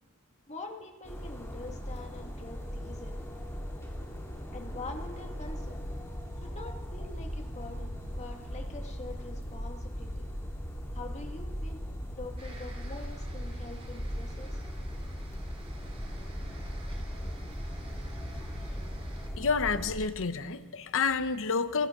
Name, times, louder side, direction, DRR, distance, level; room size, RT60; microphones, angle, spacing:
voice 1, 0.5-3.2 4.5-5.8 6.4-10.3 10.9-14.6, left 2 dB, 30° left, 3 dB, 1.9 m, -45 dB
sound 1, 1.0-20.0, equal, 10° left, 2.9 m, -38 dB
sound 2, 12.4-19.3, right 2 dB, 30° right, 2.6 m, -51 dB
voice 2, 19.4-21.9, left 5 dB, 60° left, 11 dB, 0.9 m, -29 dB
24.5 x 13.0 x 3.8 m, 1.2 s
head